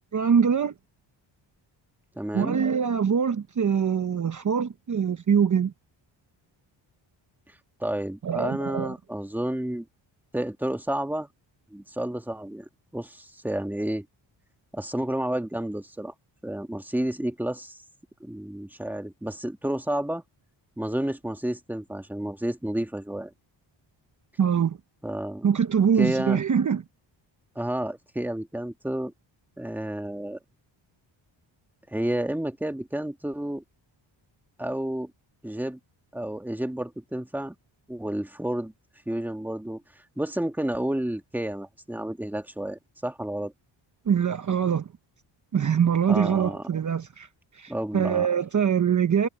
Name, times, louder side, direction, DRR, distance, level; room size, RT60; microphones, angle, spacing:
voice 1, 0.1-0.7 2.3-5.7 8.2-8.9 24.4-24.8 25.4-26.8 44.1-44.9 45.5-47.3 47.5-49.3, right 7 dB, 40° right, 1.0 m, -23 dB
voice 2, 2.2-2.6 7.8-9.9 10.3-11.3 11.7-12.6 12.9-14.1 14.7-16.1 16.4-17.8 18.2-20.2 20.8-23.3 25.0-25.5 26.0-26.4 27.6-29.1 29.6-30.4 31.9-33.6 34.6-35.1 35.4-35.8 36.1-37.6 37.9-38.7 39.1-39.8 40.2-43.5 46.1-46.6 47.7-48.3, right 1 dB, 5° right, 1.9 m, -30 dB
cardioid pair, 110°, 47 cm